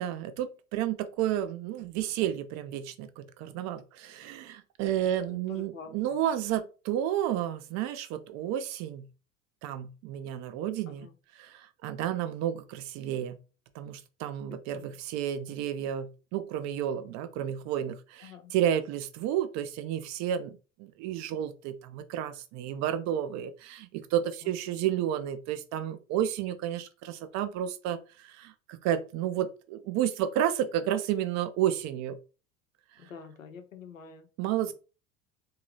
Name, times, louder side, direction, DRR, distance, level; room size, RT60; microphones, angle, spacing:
voice 1, 0.0-9.1 9.6-13.4 13.7-32.2 34.4-34.7, right 10 dB, 45° right, 0.6 m, -31 dB
voice 2, 5.0-6.2 10.9-11.1 14.7-14.9 18.2-18.5 24.4-24.6 33.0-34.3, left 6 dB, 85° left, 0.8 m, -47 dB
3.7 x 2.8 x 3.1 m
figure-of-eight pair, 75°, 39 cm